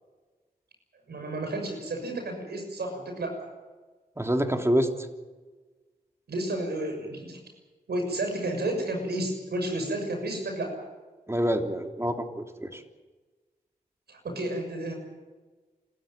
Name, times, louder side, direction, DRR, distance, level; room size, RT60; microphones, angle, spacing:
voice 1, 1.1-3.5 6.3-7.4 7.9-10.8 14.1-14.9, right 1 dB, 80° right, 4 dB, 6.5 m, -31 dB
voice 2, 4.2-4.9 11.3-12.8, equal, 15° right, 4 dB, 3.3 m, -26 dB
28.5 x 14.0 x 9.1 m, 1.3 s
cardioid pair, 45°, 17 cm